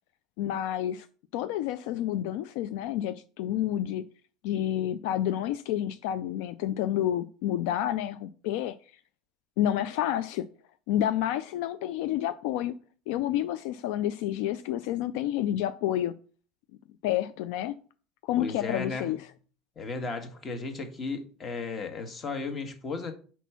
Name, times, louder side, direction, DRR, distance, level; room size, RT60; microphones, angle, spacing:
voice 1, 0.4-1.1 1.3-4.0 4.4-8.7 9.6-10.5 10.9-12.7 13.1-16.1 17.0-17.8 18.2-19.2, left 12 dB, 75° left, 0.3 m, -29 dB
voice 2, 18.4-19.1 19.7-23.1, left 4 dB, 30° left, 1.3 m, -35 dB
4.5 x 4.2 x 5.8 m
supercardioid pair, 120°, 0 cm